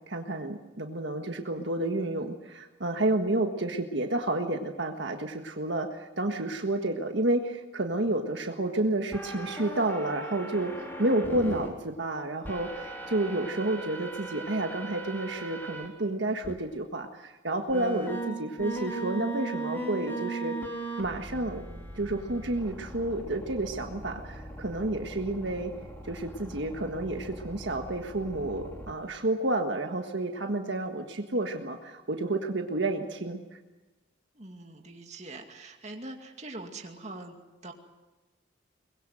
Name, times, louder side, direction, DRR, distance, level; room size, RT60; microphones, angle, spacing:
voice 1, 0.1-10.7 11.0-20.5 21.0-21.6 21.9-25.7 26.0-33.4, right 2 dB, 70° right, 4 dB, 1.6 m, -30 dB
sound 1, 9.1-11.7 12.4-15.9 16.4-16.5 17.7-28.9, right 2 dB, 10° left, 3.4 m, -39 dB
voice 2, 34.3-37.4 37.6-37.7, right 2 dB, 35° right, 3 dB, 2.4 m, -43 dB
23.0 x 21.0 x 7.8 m, 1.1 s
head